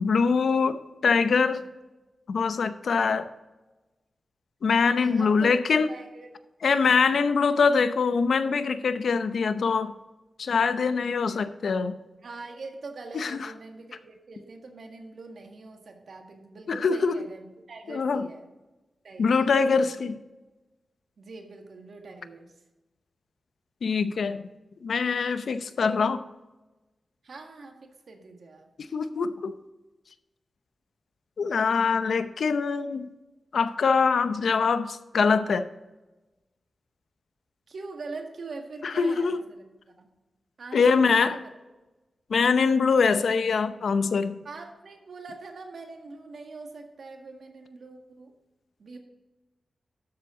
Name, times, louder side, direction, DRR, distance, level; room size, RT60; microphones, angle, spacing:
voice 1, 0.0-1.6 2.3-3.3 4.6-5.9 6.6-9.9 10.4-12.0 13.1-13.5 16.7-17.2 17.9-18.3 19.2-20.1 23.8-24.5 24.8-26.2 28.9-29.5 31.4-33.1 33.5-35.7 38.8-39.4 40.7-41.4 42.3-44.4, left 5 dB, 80° left, 11 dB, 0.7 m, -23 dB
voice 2, 4.9-5.5 5.9-6.3 7.0-7.3 12.2-18.5 19.0-20.0 21.2-22.5 27.2-28.7 37.7-40.1 40.6-41.5 44.4-48.3 48.8-49.0, right 3 dB, 70° right, 3 dB, 1.8 m, -43 dB
12.0 x 7.6 x 3.8 m, 1.1 s
wide cardioid pair, 90°, 0 cm